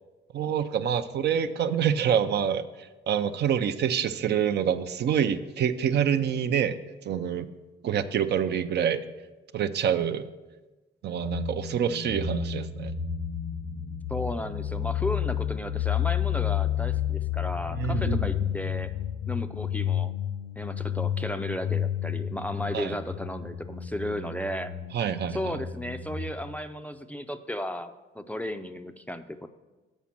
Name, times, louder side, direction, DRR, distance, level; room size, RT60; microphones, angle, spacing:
voice 1, 0.3-6.8 7.0-7.5 7.8-9.0 9.5-10.3 11.0-13.0 17.7-18.3 22.7-22.9 24.9-25.6, right 8 dB, 60° right, 10 dB, 0.5 m, -26 dB
sound 1, 11.2-26.3, left 9 dB, 80° left, 0.9 m, -31 dB
voice 2, 14.1-18.9 19.3-20.1 20.6-24.7 25.3-29.5, left 1 dB, 5° left, 8 dB, 0.4 m, -34 dB
7.3 x 5.2 x 5.7 m, 1.2 s
cardioid pair, 90°, 20 cm